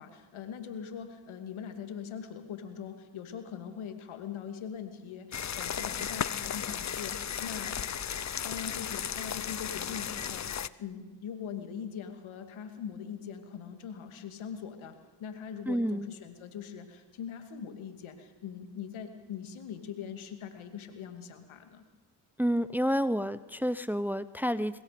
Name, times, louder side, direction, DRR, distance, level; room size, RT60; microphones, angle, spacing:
voice 1, 0.0-7.8 8.4-21.8, left 8 dB, 75° left, 7 dB, 2.6 m, -42 dB
sound 1, 5.3-10.7, left 8 dB, 35° left, 0.7 m, -35 dB
voice 2, 15.7-16.1 22.4-24.8, equal, 5° right, 15 dB, 0.8 m, -29 dB
24.0 x 21.0 x 5.2 m, 1.2 s
supercardioid pair, 50°, 49 cm